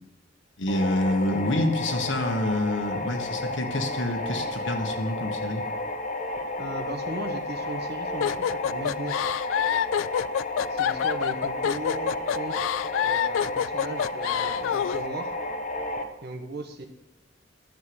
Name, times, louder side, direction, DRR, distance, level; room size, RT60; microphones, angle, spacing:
voice 1, 0.6-5.7, left 1 dB, 70° left, 4 dB, 1.5 m, -27 dB
sound 1, 0.7-16.0, left 2 dB, 40° left, 1.0 m, -32 dB
voice 2, 6.6-9.3 10.7-12.7 13.0-15.3 16.2-16.9, right 2 dB, 60° right, 5 dB, 1.3 m, -37 dB
sound 2, 8.2-15.0, left 9 dB, 90° left, 0.3 m, -27 dB
11.0 x 6.7 x 7.9 m, 0.98 s
head